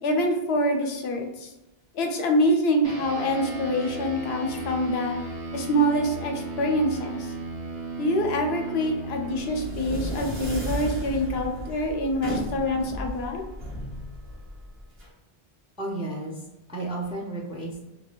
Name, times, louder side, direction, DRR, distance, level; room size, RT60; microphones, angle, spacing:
voice 1, 0.0-1.5 1.9-5.1 5.5-7.3 8.0-13.4, equal, 85° left, 3 dB, 0.8 m, -25 dB
sound 1, 2.8-12.6, right 3 dB, 40° right, 0.7 m, -36 dB
sound 2, 9.3-15.1, equal, 75° right, 1.2 m, -34 dB
voice 2, 15.8-17.9, right 2 dB, 10° right, -2 dB, 0.4 m, -33 dB
2.8 x 2.3 x 3.0 m, 1.0 s
omnidirectional pair, 1.0 m